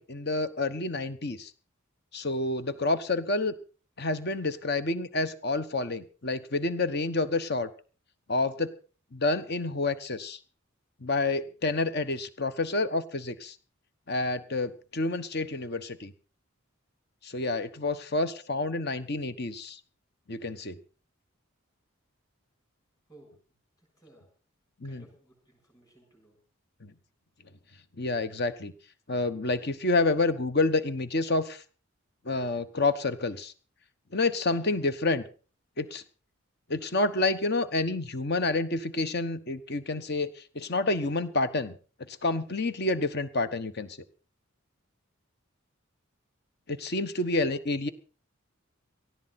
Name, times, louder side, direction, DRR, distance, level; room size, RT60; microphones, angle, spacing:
voice 1, 0.0-1.5 2.1-3.5 4.0-7.7 8.3-8.7 9.1-10.4 11.0-13.5 14.1-16.1 17.2-19.8 20.3-20.7 24.8-25.0 26.8-26.9 28.0-28.7 29.1-31.6 32.2-33.5 34.1-35.2 35.8-36.0 36.7-41.7 42.1-44.0 46.7-47.9, left 2 dB, 50° left, 12 dB, 1.2 m, -29 dB
voice 2, 24.8-26.4, right 2 dB, 15° left, 3 dB, 7.6 m, -57 dB
19.0 x 14.0 x 4.3 m, 0.38 s
head